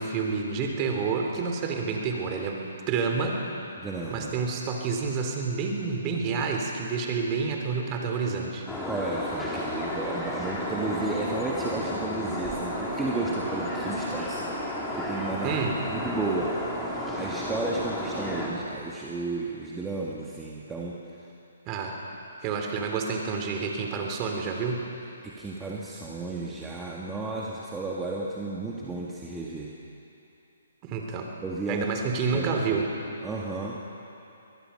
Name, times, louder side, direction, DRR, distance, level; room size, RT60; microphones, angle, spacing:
voice 1, 0.0-3.4 4.1-8.7 15.4-15.8 21.7-22.0 22.4-24.9 30.8-31.3 31.7-32.9, right 5 dB, 30° right, 2 dB, 3.1 m, -29 dB
voice 2, 3.8-4.3 8.8-15.6 15.9-21.0 25.2-29.7 31.4-31.8 32.3-32.5 33.2-33.8, right 3 dB, 10° right, -4 dB, 1.8 m, -33 dB
sound 1, 8.7-18.5, equal, 5° left, 3.6 m, -32 dB
23.5 x 19.5 x 5.7 m, 2.8 s
figure-of-eight pair, 135°, 0 cm